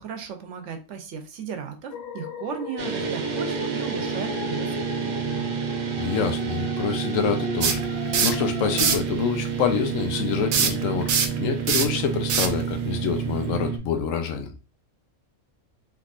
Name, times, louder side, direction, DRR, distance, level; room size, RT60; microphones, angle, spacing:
voice 1, 0.0-5.5, right 6 dB, 70° right, 6 dB, 0.9 m, -36 dB
sound 1, 1.9-9.0, left 2 dB, 60° left, 0.8 m, -35 dB
sound 2, 2.8-13.8, right 7 dB, 55° right, 0.5 m, -29 dB
voice 2, 5.9-7.8 8.2-11.1 11.4-14.5, left 7 dB, 85° left, 6 dB, 1.0 m, -26 dB
sound 3, 7.6-8.4 8.7-9.1 10.5-13.6, right 6 dB, 90° right, 1.0 m, -24 dB
3.6 x 2.9 x 2.4 m, 0.30 s
omnidirectional pair, 1.4 m